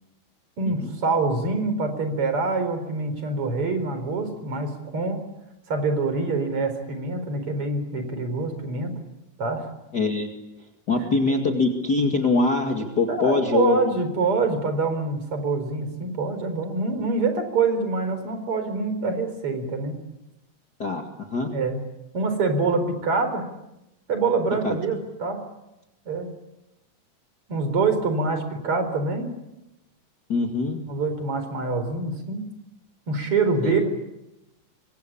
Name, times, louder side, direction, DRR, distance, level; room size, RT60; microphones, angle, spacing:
voice 1, 0.6-5.2 5.7-8.9 9.4-9.7 11.0-11.1 13.1-20.0 21.5-21.8 22.1-23.5 24.1-25.4 26.0-26.3 27.5-29.3 30.9-32.4 33.1-33.9, right 3 dB, 40° right, 9 dB, 5.0 m, -25 dB
voice 2, 9.9-10.3 10.9-13.8 20.8-21.5 24.6-24.8 30.3-30.8 33.6-33.7, left 3 dB, 35° left, 2 dB, 2.3 m, -23 dB
27.0 x 24.5 x 8.6 m, 0.91 s
omnidirectional pair, 3.9 m